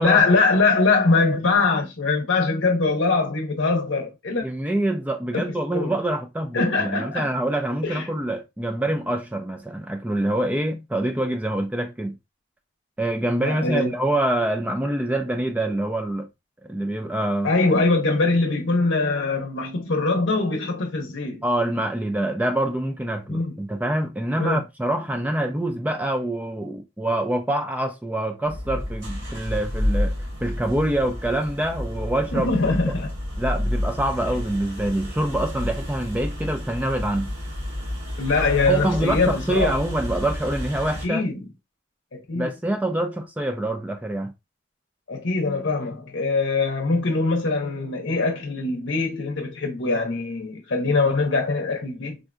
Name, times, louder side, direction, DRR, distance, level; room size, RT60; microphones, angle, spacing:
voice 1, 0.0-4.4 5.3-5.9 6.5-7.3 7.8-8.0 13.4-13.9 17.4-21.4 23.3-23.6 24.4-24.6 32.3-33.1 38.2-39.8 41.0-41.4 42.1-42.5 45.1-52.2, left 3 dB, 90° left, 0.7 m, -22 dB
voice 2, 4.4-12.2 13.0-16.3 16.6-17.5 21.4-32.9 33.4-37.3 38.7-41.2 42.3-44.3, right 1 dB, 10° right, 0.4 m, -25 dB
sound 1, 28.5-41.1, left 1 dB, 75° right, 1.6 m, -30 dB
3.7 x 2.2 x 2.5 m
head